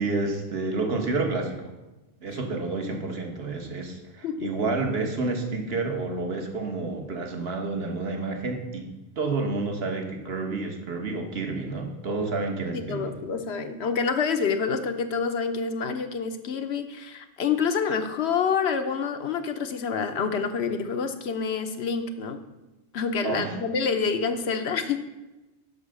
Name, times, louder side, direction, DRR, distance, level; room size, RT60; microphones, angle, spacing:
voice 1, 0.0-1.7 2.2-8.9 9.2-13.1 23.2-23.6, right 3 dB, 55° right, 3 dB, 1.4 m, -29 dB
voice 2, 12.7-22.4 22.9-25.1, left 5 dB, 65° left, 8 dB, 1.0 m, -27 dB
8.0 x 5.8 x 6.4 m, 1.1 s
omnidirectional pair, 1.2 m